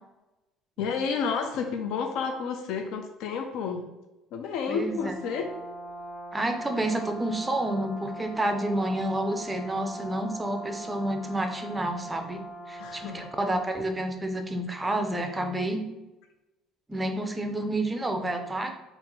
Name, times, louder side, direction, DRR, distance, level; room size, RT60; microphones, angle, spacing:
voice 1, 0.8-3.8 4.3-5.5 12.8-13.3, left 5 dB, 70° left, 5 dB, 0.4 m, -30 dB
voice 2, 4.7-5.1 6.3-12.4 12.7-15.8 16.9-18.8, right 1 dB, 10° right, 5 dB, 0.4 m, -29 dB
Brass instrument, 4.9-13.6, right 1 dB, 15° left, 0.7 m, -41 dB
3.7 x 2.5 x 3.0 m, 1.0 s
cardioid pair, 135°, 0 cm